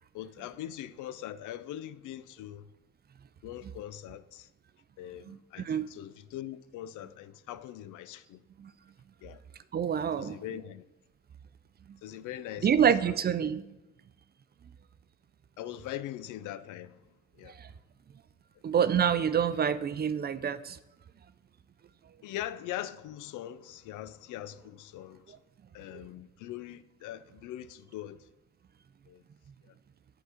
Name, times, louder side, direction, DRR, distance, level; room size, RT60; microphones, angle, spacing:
voice 1, 0.1-2.7 3.4-4.5 5.0-8.4 9.2-9.4 10.2-10.8 12.0-13.1 13.4-13.5 15.6-17.0 17.4-17.6 22.2-25.2 25.7-28.2 29.1-29.2, left 12 dB, 85° left, 0.5 m, -41 dB
voice 2, 5.3-5.9 8.6-8.7 9.7-10.4 12.6-13.8 17.5-17.7 18.6-20.8 25.9-26.0, right 8 dB, 35° right, 0.4 m, -27 dB
8.2 x 3.9 x 5.6 m
cardioid pair, 90°, 30 cm